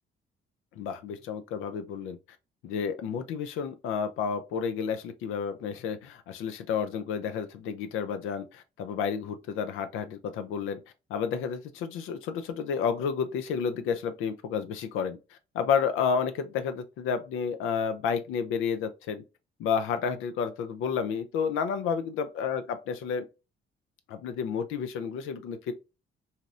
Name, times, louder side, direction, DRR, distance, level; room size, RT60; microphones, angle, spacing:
voice 1, 0.8-2.2 2.6-10.8 11.1-19.2 19.6-23.3 24.1-25.7, left 6 dB, 90° left, 0.4 m, -31 dB
4.0 x 2.0 x 2.4 m
cardioid pair, 90°, 20 cm